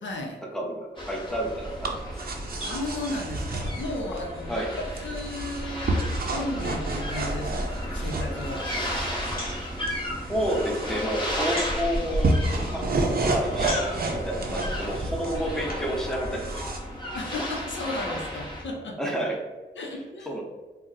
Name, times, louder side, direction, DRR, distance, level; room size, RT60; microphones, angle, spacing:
voice 1, 0.0-0.4 2.6-8.7 17.1-19.0 19.8-20.4, left 2 dB, 75° left, 0 dB, 0.6 m, -34 dB
voice 2, 0.5-2.2 4.5-4.7 7.9-8.1 10.3-12.3 12.7-12.9 13.2-16.7 19.0-19.4 20.3-20.4, equal, 5° left, -1 dB, 0.7 m, -30 dB
sound 1, 1.0-18.6, equal, 25° left, 1.4 m, -35 dB
sound 2, 1.3-16.8, right 2 dB, 50° right, 0.5 m, -30 dB
sound 3, 8.4-16.0, left 1 dB, 50° left, 0.9 m, -43 dB
3.9 x 2.0 x 2.4 m, 1.3 s
cardioid pair, 40°, 20 cm